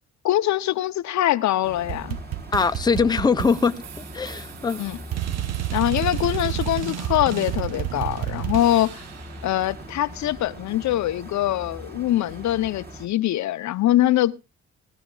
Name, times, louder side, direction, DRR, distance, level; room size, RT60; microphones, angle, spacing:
voice 1, 0.2-2.2 4.8-5.0 5.7-9.0 9.4-14.4, left 13 dB, 70° left, 0.6 m, -23 dB
sound 1, 1.6-13.1, right 1 dB, 30° right, 3.0 m, -41 dB
sound 2, 1.9-9.3, right 12 dB, 55° right, 0.8 m, -30 dB
voice 2, 2.5-4.8, left 5 dB, 15° left, 0.7 m, -22 dB
20.0 x 13.5 x 2.3 m
cardioid pair, 90°, 30 cm